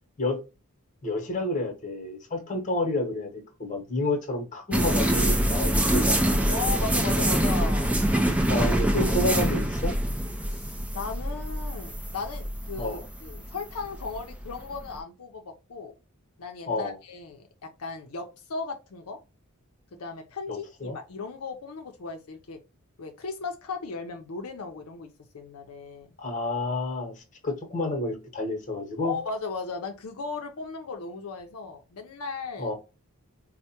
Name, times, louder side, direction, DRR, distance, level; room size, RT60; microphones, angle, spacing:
voice 1, 1.0-6.5 8.5-9.9 12.8-13.0 16.7-17.0 20.5-21.0 26.2-29.2 32.6-32.7, left 2 dB, 35° left, 0.9 m, -30 dB
sound 1, 4.7-14.9, right 1 dB, 5° right, 0.4 m, -25 dB
voice 2, 6.5-8.0 10.5-15.9 16.4-19.2 20.0-22.6 23.0-25.1 25.3-26.2 29.0-32.7, left 4 dB, 75° left, 0.5 m, -36 dB
4.5 x 2.1 x 2.8 m
head